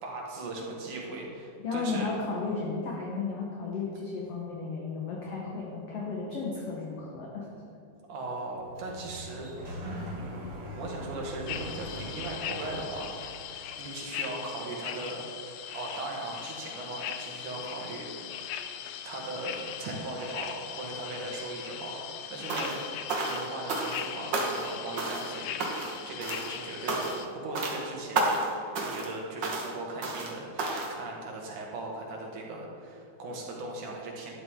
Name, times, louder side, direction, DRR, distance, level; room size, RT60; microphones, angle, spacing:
voice 1, 0.0-2.1 8.1-9.8 10.1-13.3 13.8-15.2 15.7-18.5 19.0-22.8 23.2-28.3 28.7-34.3, right 2 dB, 70° right, -1 dB, 3.2 m, -38 dB
voice 2, 1.6-7.5, left 4 dB, 60° left, -2 dB, 1.9 m, -34 dB
Sliding door, 8.5-13.6, equal, 30° right, 3.1 m, -41 dB
sound 1, 11.5-27.3, left 9 dB, 90° left, 1.5 m, -40 dB
sound 2, 22.5-22.8 23.1-24.1 24.3-24.7 25.0-25.3 25.6-26.0 26.2-26.5 26.9-27.3 27.6-27.8 28.2-28.5 28.8-29.1 29.4-29.7 30.0-30.3 30.6-30.9, right 2 dB, 50° right, 1.5 m, -31 dB
12.0 x 11.0 x 3.7 m, 2.5 s
omnidirectional pair, 3.7 m